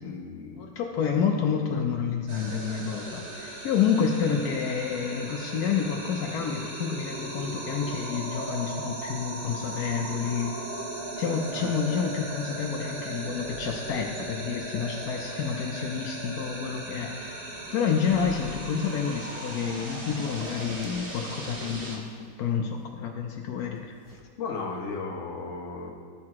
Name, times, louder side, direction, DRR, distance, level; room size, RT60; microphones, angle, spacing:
voice 1, 0.0-0.8 1.7-1.8 24.4-25.9, left 4 dB, 50° left, 0 dB, 0.9 m, -35 dB
voice 2, 0.6-10.5 11.2-17.4 17.7-22.0 22.4-23.9, left 7 dB, 85° left, 2 dB, 0.8 m, -29 dB
sound 1, 2.3-22.0, right 2 dB, 30° right, 1.3 m, -37 dB
sound 2, 11.0-12.2 12.6-22.8 23.5-24.2, right 4 dB, 65° right, 1.0 m, -49 dB
12.5 x 4.5 x 3.6 m, 2.1 s
omnidirectional pair, 2.3 m